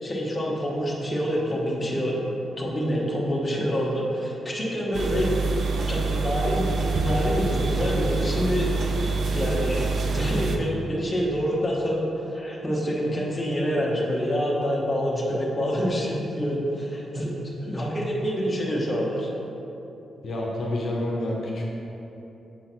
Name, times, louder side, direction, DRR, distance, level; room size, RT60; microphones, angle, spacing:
voice 1, 0.0-2.2 2.6-5.4 5.9-6.7 7.0-9.8 10.1-17.3 17.6-19.3, equal, 15° left, -4 dB, 0.9 m, -26 dB
sound 1, 4.9-10.6, right 3 dB, 55° right, 0.5 m, -26 dB
voice 2, 20.2-21.6, left 1 dB, 55° left, -3 dB, 0.7 m, -28 dB
6.8 x 3.7 x 4.4 m, 3.0 s
wide cardioid pair, 155°, 0 cm